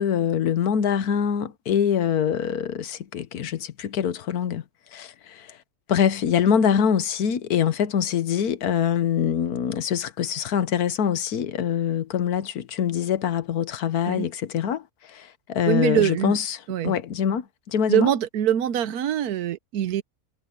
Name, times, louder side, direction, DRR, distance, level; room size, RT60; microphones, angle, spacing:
voice 1, 0.0-4.6 4.9-5.6 5.9-16.6 16.8-18.1, left 8 dB, 80° left, 1.5 m, -24 dB
voice 2, 15.7-16.4 16.7-16.9 17.9-20.0, right 10 dB, 80° right, 1.3 m, -23 dB
omnidirectional pair, 1.6 m